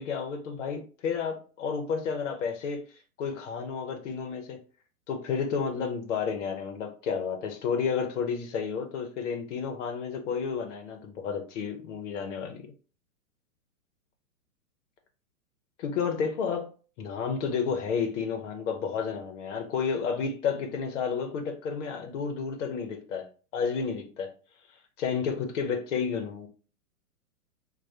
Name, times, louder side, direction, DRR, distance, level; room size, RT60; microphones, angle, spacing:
voice 1, 0.0-2.8 3.2-4.6 5.1-12.7 15.8-16.7 17.0-24.3 25.0-26.5, left 6 dB, 55° left, 0.8 m, -31 dB
4.5 x 2.3 x 2.7 m
hypercardioid pair, 120°, 45 cm